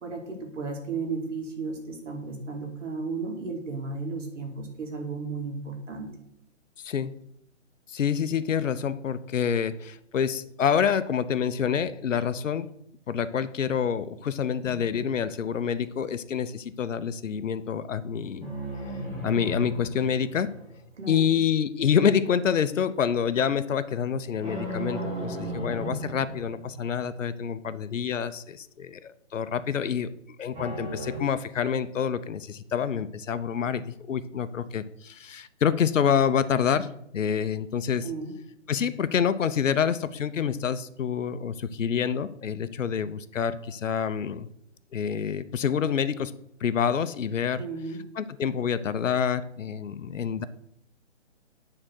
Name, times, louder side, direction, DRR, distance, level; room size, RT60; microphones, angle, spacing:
voice 1, 0.0-6.1 21.0-21.4 38.0-38.3 47.6-48.0, right 4 dB, 70° right, 2 dB, 2.4 m, -34 dB
voice 2, 6.8-7.1 7.9-12.7 13.1-18.5 19.2-20.6 21.1-30.1 30.4-38.1 38.7-44.5 44.9-46.3 46.6-47.6 48.1-50.5, left 7 dB, 80° left, 14 dB, 0.7 m, -27 dB
sound 1, 14.6-15.8 18.4-21.1 24.4-27.1 30.5-31.2, equal, 10° right, 1.6 m, -36 dB
8.8 x 3.8 x 6.2 m, 0.74 s
hypercardioid pair, 155°, 38 cm